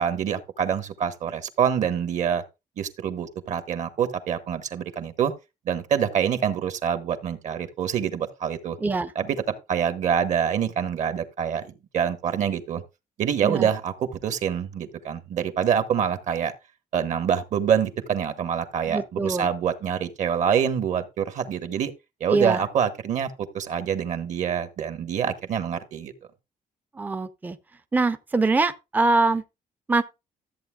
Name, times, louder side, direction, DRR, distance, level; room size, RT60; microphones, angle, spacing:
voice 1, 0.0-2.4 2.8-5.3 5.6-8.8 9.1-9.4 9.7-12.8 13.2-16.5 16.9-21.9 22.2-26.1, right 8 dB, 55° right, 1.4 m, -26 dB
voice 2, 8.8-9.1 13.4-13.7 18.9-19.5 22.3-22.6 26.9-27.6 27.9-29.4 29.9-30.0, right 3 dB, 10° right, 0.6 m, -23 dB
13.5 x 8.1 x 2.3 m
cardioid pair, 180°, 15 cm